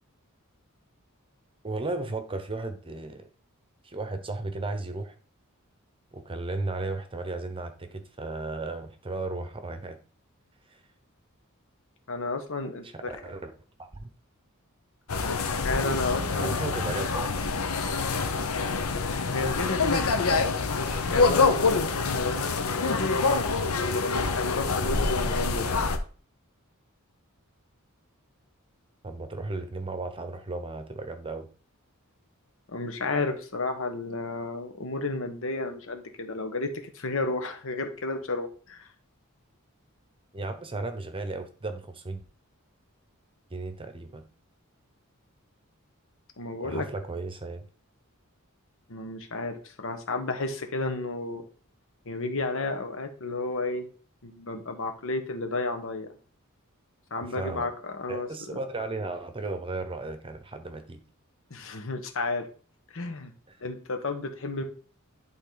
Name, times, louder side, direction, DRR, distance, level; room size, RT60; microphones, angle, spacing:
voice 1, 1.6-3.3 3.8-5.1 6.1-10.0 10.7-10.8 12.9-13.5 13.8-14.1 16.3-17.4 29.0-31.5 40.3-42.2 43.5-44.2 46.6-47.7 57.2-57.7 58.1-61.0, right 2 dB, 25° right, 8 dB, 0.8 m, -35 dB
voice 2, 12.1-13.1 15.2-16.7 19.3-25.8 32.7-38.9 46.4-46.9 48.9-51.4 52.0-53.9 54.2-56.1 57.1-58.6 61.5-62.5 62.9-63.3 63.6-64.6, left 3 dB, 65° left, 6 dB, 1.3 m, -32 dB
sound 1, 15.1-26.0, left 4 dB, 90° left, 0.9 m, -26 dB
11.0 x 3.8 x 4.0 m, 0.40 s
head